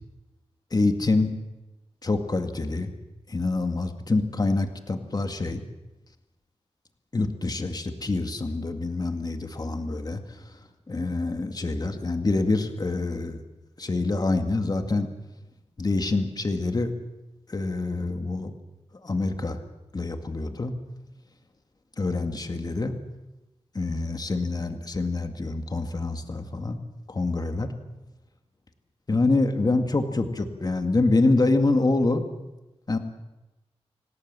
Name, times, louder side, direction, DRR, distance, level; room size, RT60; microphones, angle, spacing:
voice 1, 0.7-1.4 2.0-2.9 3.3-5.6 7.1-10.5 10.9-13.4 13.8-15.1 15.8-16.9 17.5-18.5 19.0-19.6 19.9-20.7 22.0-22.9 23.7-26.8 27.1-27.7 29.1-32.2 32.9-33.0, left 3 dB, 35° left, 6 dB, 2.0 m, -26 dB
26.5 x 18.0 x 7.6 m, 1.0 s
wide cardioid pair, 130°, 11 cm